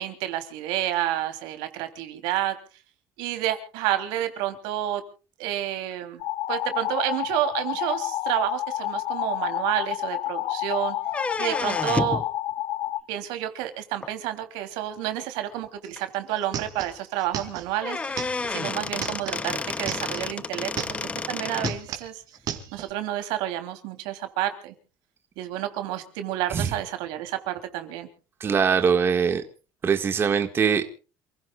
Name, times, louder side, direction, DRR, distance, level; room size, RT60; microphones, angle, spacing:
voice 1, 0.0-2.6 3.2-5.0 5.4-6.2 6.5-10.9 11.4-12.2 13.1-18.2 18.5-20.7 21.0-22.2 22.7-24.7 25.4-28.1, right 13 dB, 80° right, 7 dB, 3.3 m, -29 dB
sound 1, 6.2-13.0, left 14 dB, 70° left, 1.4 m, -29 dB
sound 2, 11.1-12.3 14.0-14.1 15.0-15.1 15.6-15.7 16.0-16.1 17.4-17.5 17.8-21.8, left 3 dB, 15° left, 0.7 m, -30 dB
sound 3, 15.8-15.9 16.1-20.3 20.6-21.2 21.5-22.9, right 9 dB, 55° right, 3.7 m, -36 dB
voice 2, 28.4-29.4 29.8-30.9, right 6 dB, 30° right, 6 dB, 1.8 m, -22 dB
28.5 x 16.5 x 2.4 m, 0.37 s
cardioid pair, 130°, 8 cm